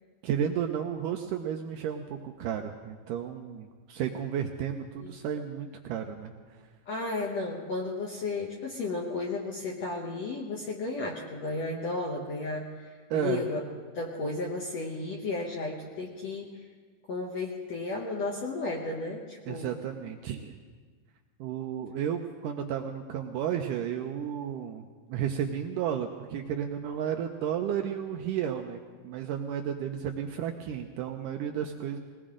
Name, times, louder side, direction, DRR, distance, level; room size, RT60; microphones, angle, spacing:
voice 1, 0.2-6.3 13.1-13.4 19.5-20.6 21.4-32.0, right 9 dB, 85° right, 5 dB, 1.9 m, -33 dB
voice 2, 6.9-13.6 13.9-16.6 17.1-19.7, left 3 dB, 65° left, -1 dB, 1.7 m, -33 dB
20.5 x 18.5 x 3.8 m, 1.5 s
omnidirectional pair, 4.5 m